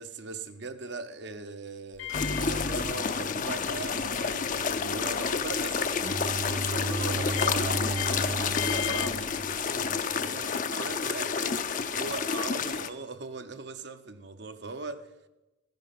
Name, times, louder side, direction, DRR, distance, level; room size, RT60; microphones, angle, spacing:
voice 1, 0.0-15.1, right 3 dB, 60° right, 0.8 m, -40 dB
Microwave oven, 1.9-10.1, left 5 dB, 80° left, 1.2 m, -39 dB
sound 1, 2.1-12.9, left 6 dB, 40° left, 0.6 m, -30 dB
Bowed string instrument, 6.0-9.9, right 2 dB, 25° right, 0.4 m, -35 dB
13.5 x 10.5 x 5.8 m
head